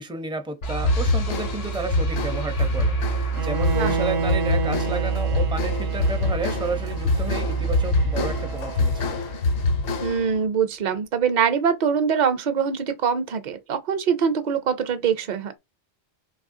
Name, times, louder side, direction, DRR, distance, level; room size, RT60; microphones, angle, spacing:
voice 1, 0.0-9.2, right 3 dB, 5° right, 0.4 m, -32 dB
sound 1, 0.6-9.7, right 6 dB, 90° left, 1.3 m, -29 dB
sound 2, 0.8-10.4, left 3 dB, 65° left, 0.8 m, -26 dB
Bowed string instrument, 3.3-9.4, right 4 dB, 80° right, 0.9 m, -31 dB
voice 2, 10.0-15.5, right 7 dB, 50° right, 0.6 m, -23 dB
4.1 x 3.0 x 2.6 m
omnidirectional pair, 1.2 m